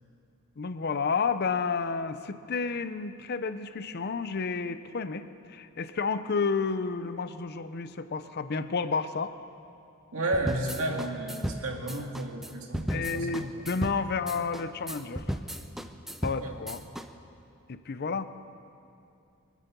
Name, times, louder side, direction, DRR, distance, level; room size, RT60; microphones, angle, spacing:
voice 1, 0.6-5.2 5.5-9.3 12.9-15.2 16.2-16.8 17.7-18.3, left 5 dB, 50° left, 11 dB, 0.6 m, -31 dB
voice 2, 10.1-13.5 16.4-16.6, right 1 dB, 80° right, 1 dB, 2.0 m, -32 dB
sound 1, 10.3-17.1, equal, ahead, 0.6 m, -35 dB
23.5 x 8.4 x 6.9 m, 2.6 s
head